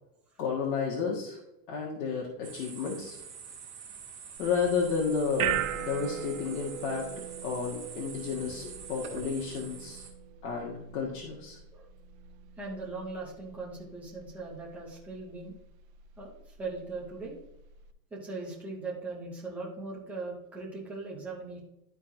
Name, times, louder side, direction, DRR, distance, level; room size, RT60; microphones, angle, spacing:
voice 1, 0.4-1.4 1.7-3.2 4.4-7.1 7.4-10.0 10.4-11.6, left 5 dB, 70° left, -3 dB, 1.8 m, -32 dB
sound 1, 2.4-10.1, right 6 dB, 20° right, 2.1 m, -45 dB
sound 2, 4.4-17.9, right 11 dB, 55° right, 0.8 m, -40 dB
voice 2, 12.6-15.5 16.2-16.3 16.6-17.4 18.1-21.6, right 3 dB, 5° right, -4 dB, 0.4 m, -39 dB
12.5 x 4.5 x 2.7 m, 0.86 s
supercardioid pair, 160°, 49 cm